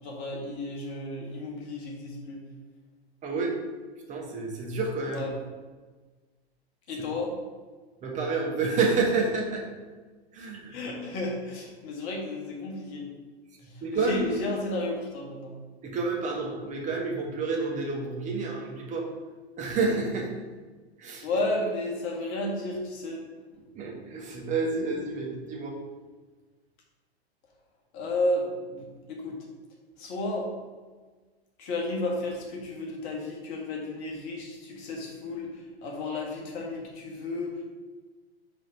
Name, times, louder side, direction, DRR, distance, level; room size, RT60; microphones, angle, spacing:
voice 1, 0.0-2.4 5.1-5.3 6.9-7.4 10.7-13.1 13.7-15.6 21.2-23.2 27.9-29.4 30.0-30.5 31.6-37.6, left 2 dB, 40° left, -2 dB, 1.7 m, -32 dB
voice 2, 3.2-3.5 4.1-5.3 8.0-9.6 10.3-10.8 13.8-14.2 15.8-19.1 19.6-20.3 21.0-21.3 23.7-25.7, right 4 dB, 20° right, 0 dB, 1.2 m, -29 dB
5.1 x 3.9 x 5.1 m, 1.4 s
figure-of-eight pair, 105°, 33 cm